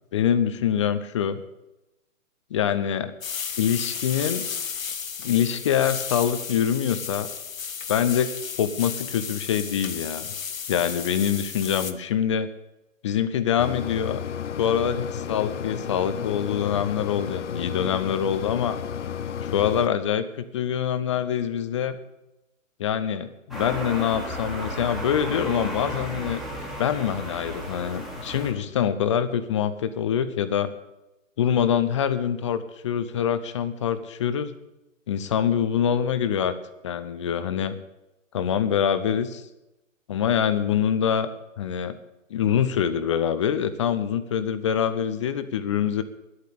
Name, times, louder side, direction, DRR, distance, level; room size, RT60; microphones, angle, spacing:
voice 1, 0.1-1.4 2.5-3.1 3.6-4.4 5.2-7.3 7.9-8.3 8.6-10.3 10.7-12.5 13.0-14.2 14.6-18.8 19.4-22.0 22.8-26.4 26.8-30.7 31.4-34.5 35.1-36.5 36.8-37.7 38.3-39.4 40.1-41.3 41.6-41.9 42.3-46.0, left 8 dB, 25° left, 12 dB, 0.6 m, -25 dB
sound 1, 3.2-11.9, left 7 dB, 80° left, 1.1 m, -33 dB
Mechanisms, 13.6-19.9, left 8 dB, 60° left, 0.7 m, -32 dB
sound 2, 23.5-28.5, equal, ahead, 1.8 m, -34 dB
10.5 x 8.6 x 8.5 m, 0.95 s
figure-of-eight pair, 140°, 40 cm